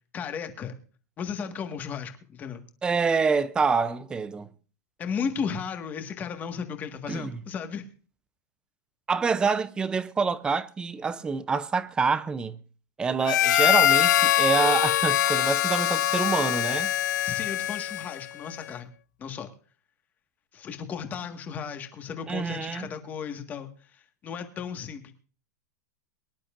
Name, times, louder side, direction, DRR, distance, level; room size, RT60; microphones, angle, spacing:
voice 1, 0.1-0.7 1.2-2.6 5.0-7.8 17.2-18.9 19.2-19.5 20.5-25.1, left 6 dB, 20° left, 1.7 m, -35 dB
voice 2, 2.8-4.5 7.1-7.4 9.1-12.6 13.0-16.9 22.3-22.9, right 5 dB, 10° right, 0.6 m, -26 dB
Harmonica, 13.2-18.3, left 12 dB, 80° left, 0.6 m, -23 dB
23.5 x 11.0 x 2.6 m
supercardioid pair, 170°, 10 cm